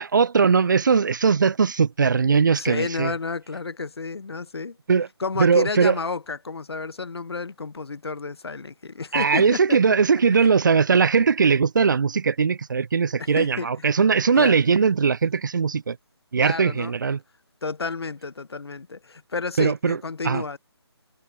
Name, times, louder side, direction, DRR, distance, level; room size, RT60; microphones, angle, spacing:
voice 1, 0.0-3.1 4.9-5.1 5.4-5.9 9.1-16.0 16.3-17.2 19.6-20.0 20.2-20.4, right 5 dB, 45° right, 0.5 m, -20 dB
voice 2, 2.6-4.8 5.2-9.8 13.2-13.7 14.3-14.6 16.4-16.9 17.6-20.6, left 4 dB, 70° left, 1.1 m, -31 dB
figure-of-eight pair, 155°, 14 cm